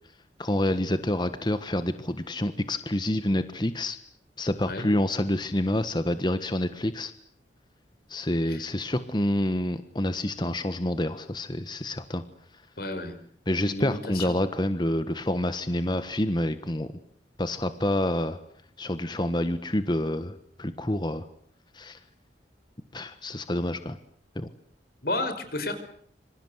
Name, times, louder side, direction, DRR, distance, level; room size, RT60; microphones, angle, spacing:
voice 1, 0.4-4.0 4.4-7.1 8.1-12.2 13.5-16.9 17.4-18.4 18.8-21.2 21.7-22.0 22.9-24.0 24.3-24.5, left 1 dB, 25° left, 11 dB, 1.4 m, -28 dB
voice 2, 12.8-13.1 13.6-14.4 25.0-25.8, left 2 dB, 60° left, 9 dB, 5.6 m, -32 dB
27.0 x 26.0 x 8.1 m, 0.62 s
head